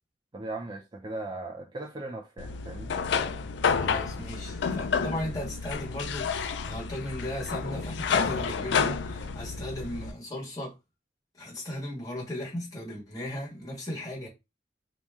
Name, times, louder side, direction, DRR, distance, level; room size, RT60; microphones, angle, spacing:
voice 1, 0.3-2.9, right 2 dB, 25° right, 0.4 m, -38 dB
sound 1, 2.4-10.1, left 6 dB, 75° left, 0.4 m, -30 dB
voice 2, 3.7-10.7 11.4-14.3, left 1 dB, 20° left, 1.5 m, -36 dB
3.0 x 2.8 x 3.5 m
head